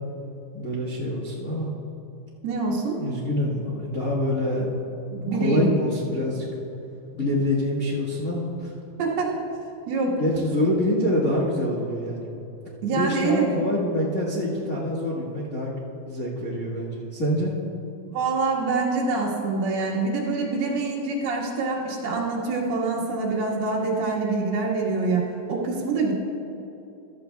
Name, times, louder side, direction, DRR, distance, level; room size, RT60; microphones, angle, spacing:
voice 1, 0.5-1.7 2.9-4.7 5.3-6.5 7.1-8.7 10.2-12.3 12.9-17.5, left 1 dB, 65° left, -4 dB, 0.8 m, -26 dB
voice 2, 2.4-3.0 5.1-5.7 9.0-9.3 9.9-10.1 12.8-13.5 18.0-25.2 25.5-26.1, right 3 dB, 85° right, -5 dB, 3.6 m, -25 dB
15.5 x 13.0 x 2.3 m, 2.9 s
omnidirectional pair, 4.5 m